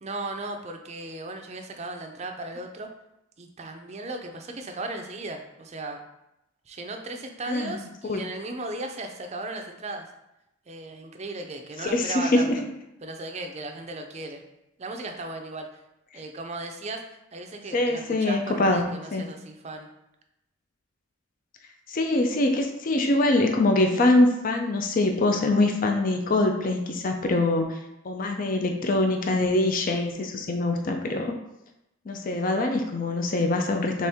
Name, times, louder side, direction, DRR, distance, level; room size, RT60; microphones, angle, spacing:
voice 1, 0.0-2.9 3.4-6.0 6.7-10.1 10.7-12.5 13.0-14.4 14.8-15.7 16.1-19.9, right 2 dB, 30° right, 4 dB, 0.5 m, -36 dB
voice 2, 7.5-7.8 8.1-8.2 11.9-12.6 17.7-19.3 21.9-27.8 28.0-31.3 32.1-34.1, left 2 dB, 40° left, 4 dB, 0.4 m, -24 dB
4.2 x 3.5 x 3.5 m, 0.88 s
head